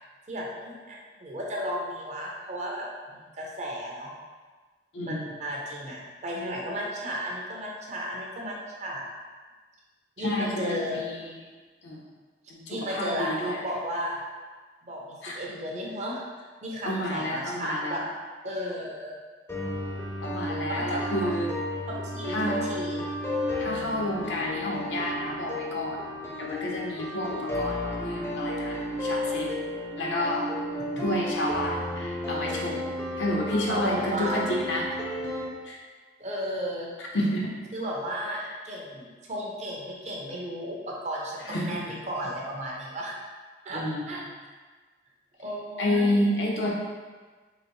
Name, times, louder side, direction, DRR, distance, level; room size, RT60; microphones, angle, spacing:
voice 1, 0.3-4.1 5.0-9.0 10.2-11.0 12.7-14.2 14.8-18.0 18.4-19.1 20.7-21.3 21.9-23.0 33.7-34.4 36.2-36.9 37.7-43.1 43.6-44.2 45.4-46.3, equal, 40° right, -2 dB, 0.7 m, -34 dB
voice 2, 4.9-5.3 10.2-11.3 11.8-12.0 12.5-13.6 15.2-15.4 16.8-18.0 20.2-21.5 22.3-22.6 23.6-26.0 26.4-29.5 30.0-30.5 31.0-32.8 33.2-35.0 35.6-35.8 37.1-37.5 41.4-42.0 43.7-44.1 45.8-46.7, left 1 dB, 90° left, -2 dB, 0.8 m, -30 dB
sound 1, 19.5-35.5, left 1 dB, 15° left, 0.5 m, -33 dB
4.0 x 2.9 x 3.1 m, 1.4 s
head